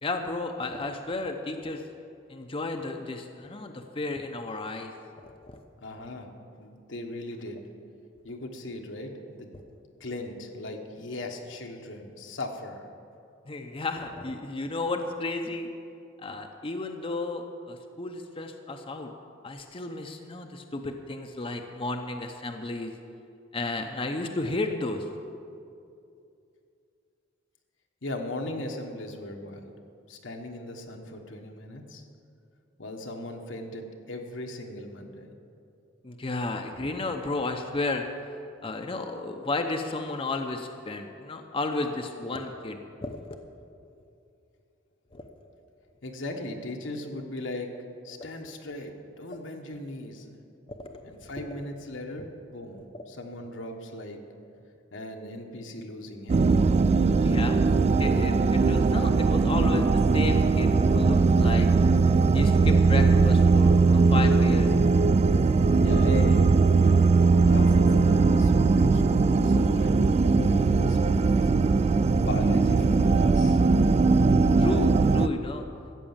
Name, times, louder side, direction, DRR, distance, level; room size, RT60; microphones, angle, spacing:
voice 1, 0.0-1.8 2.3-5.6 9.5-9.6 13.5-15.7 16.2-19.1 19.4-22.9 23.5-25.1 36.0-38.0 38.6-43.2 45.1-45.2 50.8-51.3 52.9-53.0 57.2-57.6 58.0-61.7 62.3-64.7 74.6-75.6, left 2 dB, 30° left, 4 dB, 0.7 m, -33 dB
voice 2, 5.8-6.3 6.6-7.6 8.2-9.5 10.0-12.9 28.0-29.7 30.1-32.0 32.8-35.3 46.0-47.7 48.0-50.3 51.0-52.8 53.1-54.2 54.9-56.5 65.8-71.5 72.3-73.6, left 1 dB, 80° left, 3 dB, 1.4 m, -38 dB
sound 1, 56.3-75.3, right 4 dB, 35° right, 0.3 m, -20 dB
14.0 x 8.4 x 7.3 m, 2.5 s
head